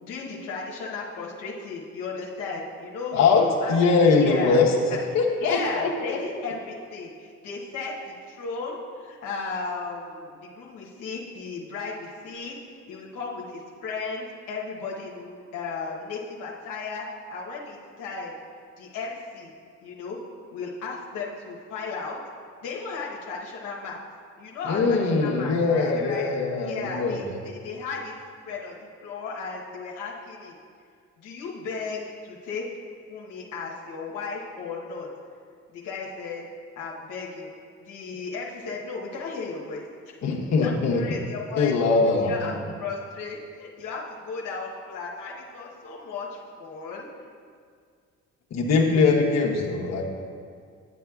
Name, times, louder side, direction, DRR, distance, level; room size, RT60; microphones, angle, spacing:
voice 1, 0.0-3.7 4.0-4.6 4.9-5.0 5.4-12.5 12.9-18.4 18.8-19.5 19.8-20.2 20.5-22.2 22.6-24.0 24.4-26.3 26.6-28.1 28.4-30.6 31.2-32.6 33.1-35.1 35.7-36.4 36.8-37.5 37.8-40.1 40.6-41.7 42.2-47.1, left 4 dB, 90° left, -3 dB, 1.0 m, -35 dB
voice 2, 3.1-4.7 5.1-6.2 24.7-27.2 40.2-41.0 41.6-42.5 48.5-50.0, left 4 dB, 60° left, -1 dB, 1.1 m, -22 dB
10.0 x 8.2 x 2.3 m, 2.1 s
cardioid pair, 90°, 30 cm